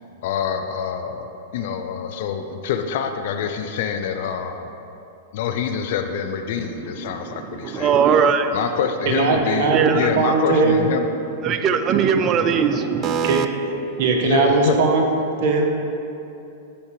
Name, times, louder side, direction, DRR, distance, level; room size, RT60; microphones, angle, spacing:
voice 1, 0.2-1.3 1.5-4.7 5.3-7.9 8.5-11.1 14.2-14.8, left 7 dB, 65° left, 7 dB, 0.5 m, -26 dB
voice 2, 6.7-8.5 9.7-10.1 11.4-13.5 14.0-14.1, right 7 dB, 35° right, 9 dB, 0.5 m, -20 dB
voice 3, 9.1-10.9 13.2-15.1 15.4-15.7, right 4 dB, 55° right, 1 dB, 1.2 m, -20 dB
10.5 x 4.2 x 4.9 m, 2.8 s
hypercardioid pair, 120°, 0 cm